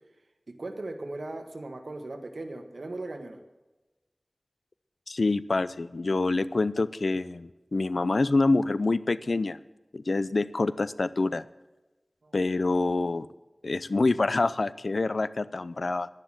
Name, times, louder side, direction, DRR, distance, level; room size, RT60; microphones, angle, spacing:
voice 1, 0.5-3.4 12.2-12.3, right 2 dB, 85° right, 6 dB, 1.6 m, -38 dB
voice 2, 5.1-9.6 9.9-11.4 12.3-13.3 13.6-16.1, left 3 dB, 85° left, 16 dB, 0.5 m, -26 dB
11.5 x 10.5 x 7.5 m, 1.1 s
wide cardioid pair, 55°, 0 cm